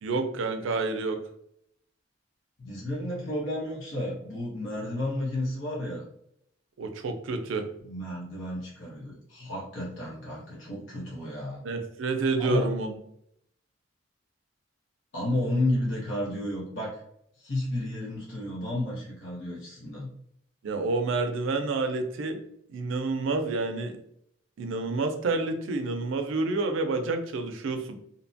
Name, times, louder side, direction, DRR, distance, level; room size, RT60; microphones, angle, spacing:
voice 1, 0.0-1.2 6.8-7.7 11.6-13.0 20.6-22.4 22.7-24.0 24.6-28.0, right 3 dB, 80° right, 7 dB, 0.4 m, -29 dB
voice 2, 2.6-6.0 7.8-11.6 12.4-12.7 15.1-17.0 17.4-20.1, left 1 dB, 75° left, -5 dB, 0.9 m, -32 dB
2.7 x 2.1 x 2.6 m, 0.72 s
head